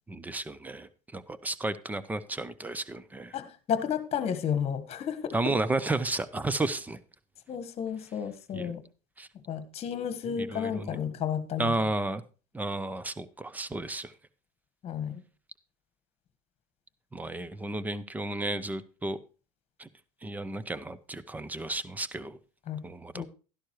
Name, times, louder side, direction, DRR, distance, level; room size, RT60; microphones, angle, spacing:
voice 1, 0.1-3.3 5.3-7.0 8.5-8.7 9.2-9.3 10.3-11.0 11.6-12.2 12.5-14.1 17.1-19.2 19.8-19.9 20.2-22.4 22.8-23.3, right 2 dB, 10° right, 0.7 m, -33 dB
voice 2, 3.3-5.4 7.5-8.8 9.5-11.7 14.8-15.2 22.7-22.8 23.1-23.3, left 8 dB, 35° left, 1.5 m, -32 dB
12.0 x 11.5 x 3.1 m
supercardioid pair, 120°, 19 cm